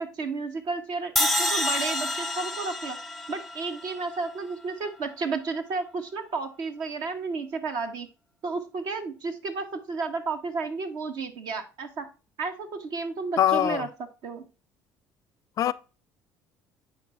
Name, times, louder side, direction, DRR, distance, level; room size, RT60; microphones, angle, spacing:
voice 1, 0.0-3.0 3.3-8.1 8.4-12.1 12.4-13.9 14.2-14.5, right 4 dB, 65° right, 1.4 m, -32 dB
sound 1, 1.2-4.4, left 1 dB, ahead, 0.7 m, -28 dB
voice 2, 13.4-13.9 15.6-15.7, left 11 dB, 50° left, 0.4 m, -22 dB
9.6 x 4.6 x 2.5 m
hypercardioid pair, 70°, 8 cm